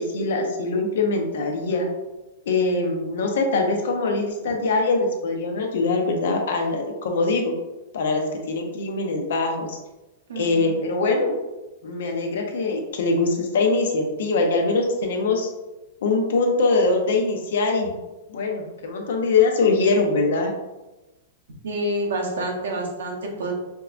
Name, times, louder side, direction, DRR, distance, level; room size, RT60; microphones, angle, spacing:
voice 1, 0.0-1.9 2.5-7.5 7.9-9.8 10.4-11.4 11.8-15.5 16.0-17.9 18.3-20.5, left 3 dB, 75° left, 2 dB, 0.7 m, -23 dB
voice 2, 10.3-10.8 21.6-23.5, right 1 dB, 90° right, 0 dB, 0.9 m, -28 dB
4.5 x 2.2 x 2.5 m, 1.0 s
hypercardioid pair, 150°, 0 cm